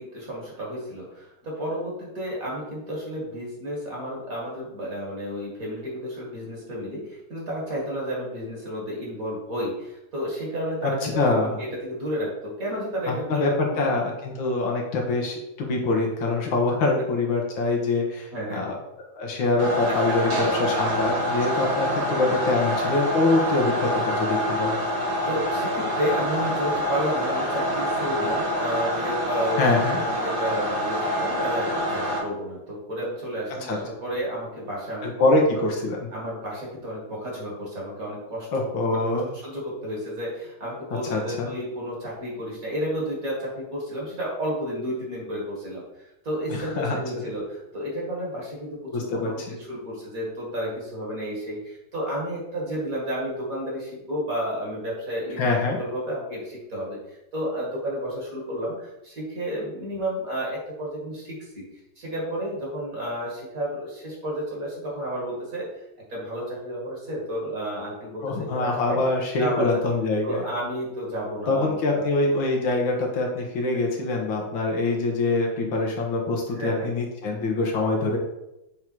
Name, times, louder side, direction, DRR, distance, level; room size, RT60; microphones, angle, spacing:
voice 1, 0.0-13.9 18.3-18.7 19.9-20.3 20.7-20.8 22.6-22.7 25.2-29.8 30.1-35.2 36.1-57.0 57.3-61.6 62.0-65.7 66.1-69.0 69.4-69.7 70.2-72.0 76.6-76.9, equal, 40° right, -4 dB, 2.3 m, -32 dB
voice 2, 10.8-11.6 13.1-18.8 19.1-24.8 29.6-30.0 33.6-33.8 35.0-36.1 38.5-39.3 41.0-41.5 46.5-47.0 48.9-49.5 55.4-55.8 68.2-70.5 71.5-78.2, left 2 dB, 65° left, 0 dB, 1.7 m, -24 dB
sound 1, 19.6-32.2, equal, 75° right, 3.1 m, -26 dB
7.2 x 3.7 x 4.6 m, 0.90 s
omnidirectional pair, 2.4 m